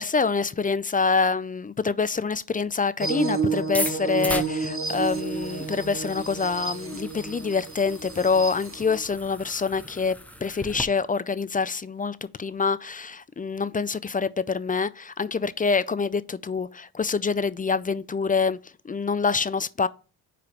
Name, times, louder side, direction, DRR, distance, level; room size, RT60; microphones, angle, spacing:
voice 1, 0.0-18.6 18.8-19.9, left 5 dB, 20° left, 0.3 m, -26 dB
sound 1, 3.0-9.0, right 4 dB, 25° right, 1.2 m, -31 dB
sound 2, 3.6-10.8, left 1 dB, 5° left, 0.7 m, -37 dB
5.2 x 4.8 x 5.8 m
cardioid pair, 80°, 48 cm